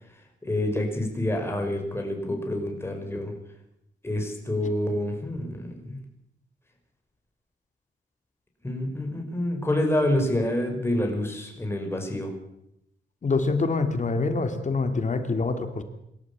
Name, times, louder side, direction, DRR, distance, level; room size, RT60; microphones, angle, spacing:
voice 1, 0.4-3.3 4.0-6.0 8.6-12.3, left 1 dB, 15° left, 3 dB, 5.6 m, -27 dB
voice 2, 13.2-15.8, left 3 dB, 40° left, 7 dB, 2.5 m, -25 dB
26.5 x 13.0 x 8.8 m, 0.81 s
wide cardioid pair, 125°, 19 cm